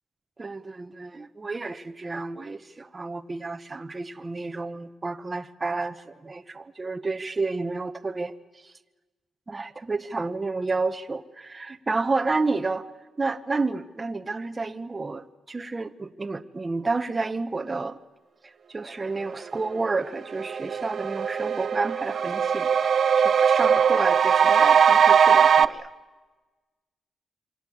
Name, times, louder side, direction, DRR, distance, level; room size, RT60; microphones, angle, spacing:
voice 1, 0.4-8.3 9.5-12.9 13.2-18.0 18.4-23.0 23.2-25.9, right 3 dB, 25° right, 1.1 m, -30 dB
sound 1, 19.9-20.0 20.3-25.7, right 7 dB, 55° right, 0.9 m, -20 dB
27.5 x 24.5 x 8.6 m
cardioid pair, 110°, 0 cm